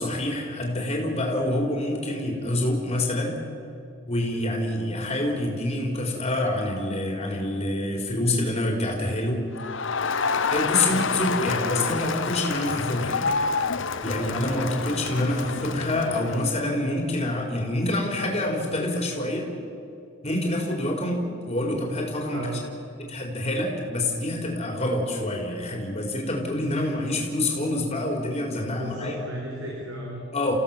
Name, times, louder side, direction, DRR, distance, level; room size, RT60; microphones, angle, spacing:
voice 1, 0.0-3.4 4.1-9.4 10.5-13.3 14.0-19.5 20.2-22.5 23.1-29.2 30.3-30.5, left 1 dB, 30° left, 1 dB, 4.2 m, -26 dB
Crowd, 9.6-16.6, left 5 dB, 60° left, 0.9 m, -28 dB
voice 2, 10.8-11.4 22.3-22.6 26.7-26.9 28.7-30.2, right 1 dB, 70° right, -2 dB, 4.7 m, -35 dB
28.0 x 16.0 x 7.3 m, 2.6 s
head